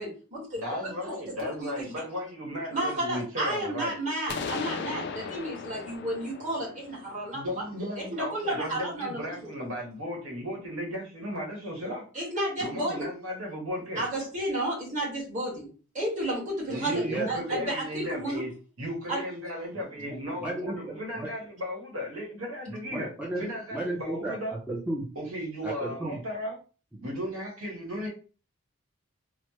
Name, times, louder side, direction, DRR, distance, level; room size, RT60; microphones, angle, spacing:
voice 1, 0.0-1.1 1.6-2.0 2.7-7.6 8.0-9.2 12.1-13.1 13.9-15.7 15.9-18.4 19.1-19.2, right 1 dB, 35° right, -5 dB, 1.5 m, -32 dB
voice 2, 0.5-3.9 7.3-12.0 12.6-14.0 16.7-18.5 18.8-23.1 23.4-24.5 25.1-26.5 27.0-28.1, equal, 80° right, -2 dB, 1.3 m, -35 dB
sound 1, 4.3-8.1, left 5 dB, 50° left, 0.3 m, -38 dB
voice 3, 16.9-17.6 20.0-21.3 22.7-23.4 23.7-24.4 24.7-25.0 25.6-26.2, right 1 dB, 5° right, -4 dB, 0.5 m, -34 dB
3.1 x 2.1 x 2.9 m, 0.36 s
head